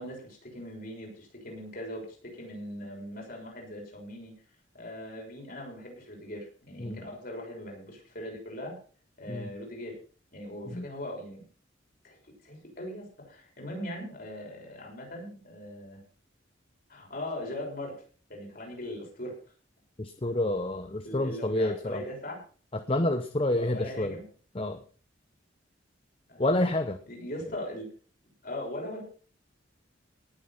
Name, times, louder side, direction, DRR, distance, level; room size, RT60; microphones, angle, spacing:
voice 1, 0.0-4.3 4.7-8.8 9.2-10.0 10.3-11.4 12.0-12.2 12.4-16.0 16.9-18.0 18.3-19.3 21.0-22.4 23.5-24.2 26.3-26.6 27.0-27.8 28.4-29.0, left 1 dB, 45° left, -1 dB, 6.7 m, -40 dB
voice 2, 20.0-22.0 22.7-24.2 24.5-24.8 26.4-27.0, left 1 dB, 30° left, 9 dB, 0.8 m, -28 dB
18.5 x 7.7 x 5.8 m, 0.40 s
head